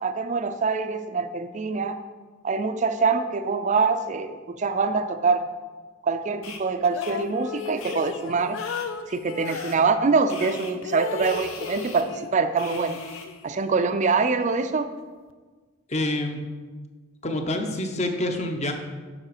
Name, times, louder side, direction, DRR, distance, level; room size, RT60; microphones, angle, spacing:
voice 1, 0.0-2.0 2.4-5.5 6.0-8.6 9.1-13.0 13.4-14.9, right 4 dB, 35° right, 9 dB, 0.4 m, -24 dB
sound 1, 6.4-6.6 7.0-7.1 7.8-8.0 8.6-8.9 9.4-9.8 10.3-10.7 11.2-12.0 12.6-13.3, left 4 dB, 80° left, 1.0 m, -40 dB
sound 2, 6.8-9.7 10.4-12.4 12.7-13.8, left 5 dB, 60° left, 0.4 m, -35 dB
voice 2, 15.9-16.4 17.2-18.7, left 1 dB, 30° left, 5 dB, 0.8 m, -27 dB
7.5 x 6.0 x 4.8 m, 1.4 s
head